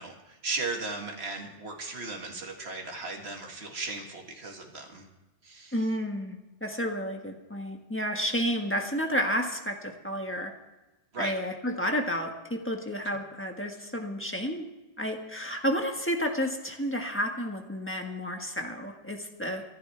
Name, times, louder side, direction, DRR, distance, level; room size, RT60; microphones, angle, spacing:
voice 1, 0.0-5.1 5.4-5.7 11.1-11.3, right 3 dB, 60° right, 1 dB, 2.3 m, -36 dB
voice 2, 5.7-10.5 11.2-14.7 15.0-19.6, equal, 10° left, 2 dB, 1.5 m, -31 dB
25.0 x 11.5 x 3.4 m, 1.1 s
omnidirectional pair, 1.2 m